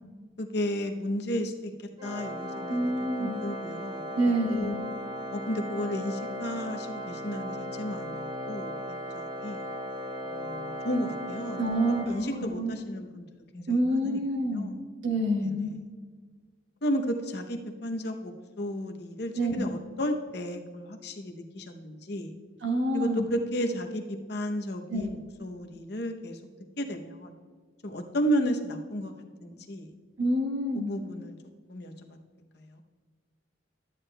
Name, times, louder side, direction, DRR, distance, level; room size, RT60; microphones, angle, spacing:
voice 1, 0.4-1.7 2.0-2.9 3.2-4.8 5.3-9.6 10.2-13.2 13.5-14.2 14.5-14.7 15.4-15.8 16.8-22.3 22.9-26.4 26.8-27.3 27.8-29.1 29.4-29.9 30.7-31.3 31.7-31.9 32.5-32.8, equal, 55° left, 4 dB, 0.7 m, -33 dB
Organ, 2.0-12.8, equal, 20° right, 0.5 m, -37 dB
voice 2, 2.7-3.4 4.2-4.7 11.6-12.0 12.6-12.7 13.7-14.7 15.0-15.7 19.3-19.7 22.6-23.3 24.9-25.0 30.2-30.9, right 1 dB, 65° right, 1 dB, 1.4 m, -27 dB
13.0 x 9.0 x 2.2 m, 1.5 s
head